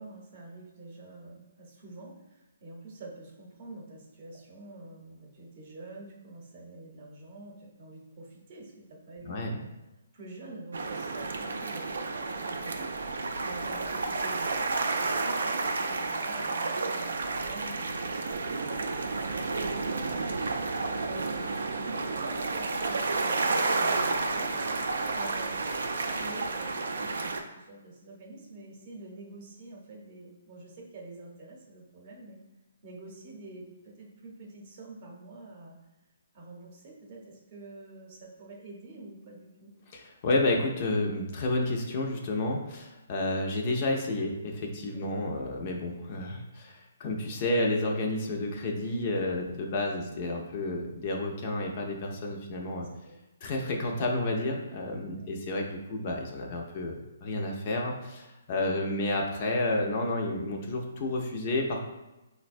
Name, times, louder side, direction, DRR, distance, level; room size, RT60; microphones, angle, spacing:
voice 1, 0.0-9.7 10.1-18.4 19.0-20.6 21.0-32.4 32.8-35.8 36.3-39.7 44.9-45.2 49.3-49.4 49.8-50.1 52.8-53.1 53.5-53.7 55.0-55.3 58.6-58.8, right 2 dB, 45° right, -1 dB, 0.7 m, -47 dB
sound 1, 10.7-27.4, right 3 dB, 80° right, 0.3 m, -31 dB
voice 2, 39.9-52.9 53.4-61.8, left 2 dB, 40° left, 1 dB, 0.5 m, -30 dB
3.9 x 2.1 x 2.5 m, 1.0 s
hypercardioid pair, 150°, 0 cm